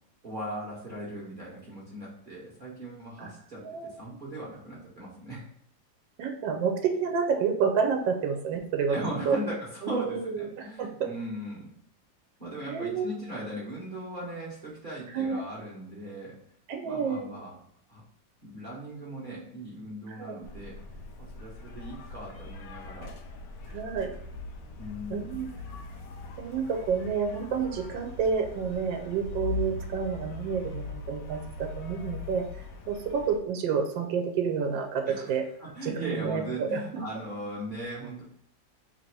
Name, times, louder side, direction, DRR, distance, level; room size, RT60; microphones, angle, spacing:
voice 1, 0.2-5.4 8.9-11.7 12.4-16.4 16.8-17.5 17.9-18.0 18.4-20.8 21.2-23.1 24.8-25.4 35.1-35.3 35.6-38.2, right 1 dB, 35° right, -6 dB, 0.9 m, -38 dB
voice 2, 3.6-4.0 6.2-9.0 9.2-9.4 9.8-11.1 12.6-13.1 15.1-15.5 16.7-17.4 20.1-20.4 23.7-24.1 25.1-25.8 26.4-35.5 35.8-37.0, right 6 dB, 80° right, 4 dB, 1.3 m, -29 dB
sound 1, 20.4-33.4, left 3 dB, 70° left, 0.8 m, -40 dB
3.2 x 2.7 x 4.4 m, 0.69 s
omnidirectional pair, 2.0 m